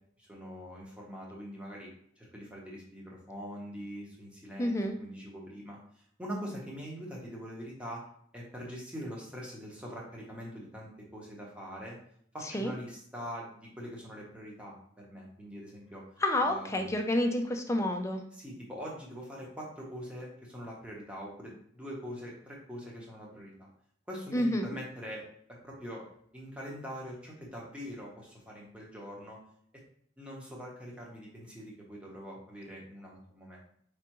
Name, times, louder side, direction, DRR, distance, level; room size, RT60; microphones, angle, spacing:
voice 1, 0.2-8.1 8.3-12.0 12.3-16.0 16.4-16.9 18.3-23.7 24.1-26.0 26.3-29.4 30.2-33.6, equal, 5° right, -3 dB, 1.0 m, -43 dB
voice 2, 4.6-5.0 12.5-12.7 16.2-18.2 24.3-24.8, left 1 dB, 15° left, 4 dB, 0.4 m, -29 dB
4.9 x 3.4 x 3.0 m, 0.66 s
head